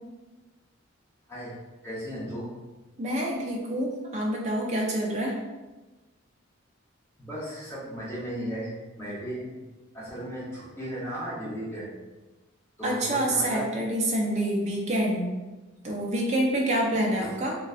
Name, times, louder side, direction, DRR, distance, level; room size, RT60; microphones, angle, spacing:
voice 1, 1.8-2.5 7.2-8.7 9.0-9.6 9.9-11.9 12.8-13.7 17.2-17.4, equal, 10° left, -7 dB, 0.6 m, -35 dB
voice 2, 3.0-5.4 12.8-15.3 15.8-17.5, right 1 dB, 30° right, -1 dB, 0.4 m, -27 dB
2.5 x 2.1 x 2.3 m, 1.2 s
head